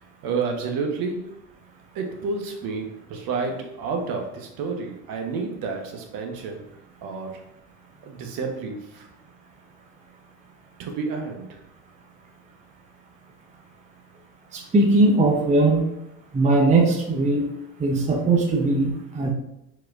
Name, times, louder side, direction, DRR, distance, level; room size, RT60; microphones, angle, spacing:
voice 1, 0.2-1.4 1.9-6.6 7.0-7.4 8.0-9.1 10.8-11.6, right 4 dB, 50° right, 3 dB, 1.1 m, -30 dB
voice 2, 14.5-15.9 16.3-17.5 17.8-19.3, right 2 dB, 15° right, 0 dB, 0.7 m, -20 dB
4.4 x 4.2 x 2.5 m, 0.83 s
hypercardioid pair, 80°, 46 cm